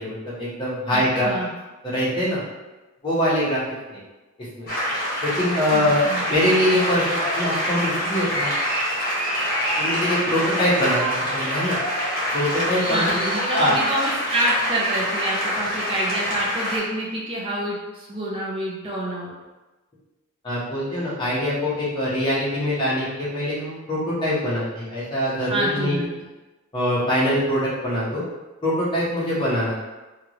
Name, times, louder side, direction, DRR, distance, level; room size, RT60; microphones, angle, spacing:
voice 1, 0.0-1.3 1.8-2.4 3.0-3.6 3.9-4.0 4.5-4.7 5.2-8.5 9.8-11.8 12.3-13.2 13.5-13.8 20.4-25.9 26.7-28.2 28.6-29.7, equal, 20° left, -9 dB, 1.1 m, -23 dB
voice 2, 0.9-1.5 5.7-6.3 12.9-19.3 25.5-26.1, right 1 dB, 25° right, -6 dB, 0.6 m, -27 dB
sound 1, 4.7-16.8, equal, 40° left, 1.1 m, -25 dB
3.4 x 2.4 x 3.0 m, 1.1 s
head